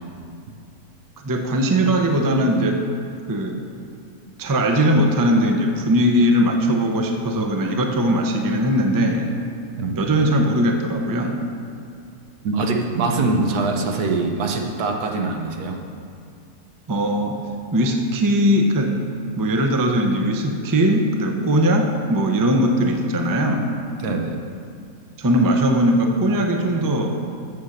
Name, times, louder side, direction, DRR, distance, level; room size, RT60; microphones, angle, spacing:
voice 1, 1.2-2.8 3.3-3.6 4.4-9.3 10.0-11.4 16.9-17.4 17.7-19.0 19.4-23.8 25.2-27.4, equal, 30° right, 3 dB, 0.4 m, -20 dB
voice 2, 12.4-15.8 24.0-24.4, right 3 dB, 85° right, 2 dB, 1.5 m, -23 dB
8.0 x 7.2 x 6.6 m, 2.4 s
omnidirectional pair, 1.6 m